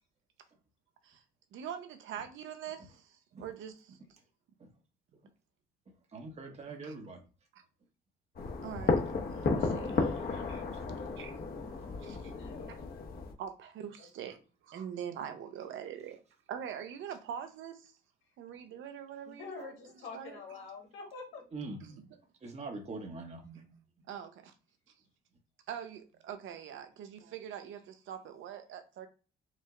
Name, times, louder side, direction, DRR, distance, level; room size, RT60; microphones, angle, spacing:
voice 1, 1.5-4.0 6.7-7.0 8.6-10.6 11.2-11.3 11.6-12.3 12.7-12.8 13.4-14.4 14.6-16.2 16.5-17.9 18.4-19.7 20.1-20.4 21.8-22.0 23.4-23.8 24.1-24.5 25.7-29.1, right 8 dB, 80° right, 0.9 m, -44 dB
voice 2, 6.1-7.2 10.7-10.8 21.5-21.8 22.4-23.7, right 3 dB, 35° right, 0.9 m, -43 dB
sound 1, 8.4-13.3, left 4 dB, 50° left, 1.0 m, -33 dB
voice 3, 12.3-12.7 14.0-14.1 19.3-21.4, left 4 dB, 80° left, 1.7 m, -46 dB
4.8 x 2.1 x 3.7 m
cardioid pair, 90°, 20 cm